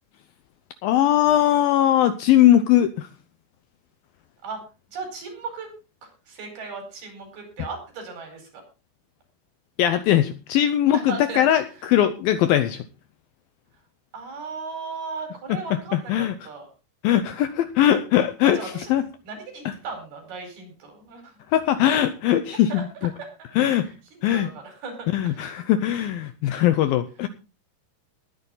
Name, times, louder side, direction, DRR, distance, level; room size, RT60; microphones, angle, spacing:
voice 1, 0.8-3.1 9.8-12.8 15.5-16.3 17.0-19.0 19.7-19.8 21.5-22.9 23.6-23.9 24.2-24.5 25.1-27.3, left 11 dB, 75° left, 11 dB, 2.2 m, -20 dB
voice 2, 4.9-5.7 6.0-8.6 10.9-11.5 14.1-16.7 18.4-18.9 19.2-21.4 22.5-22.8 23.2-23.3 23.6-25.5 26.5-26.6, right 4 dB, 65° right, 5 dB, 6.6 m, -37 dB
19.5 x 9.7 x 3.9 m, 0.31 s
omnidirectional pair, 4.9 m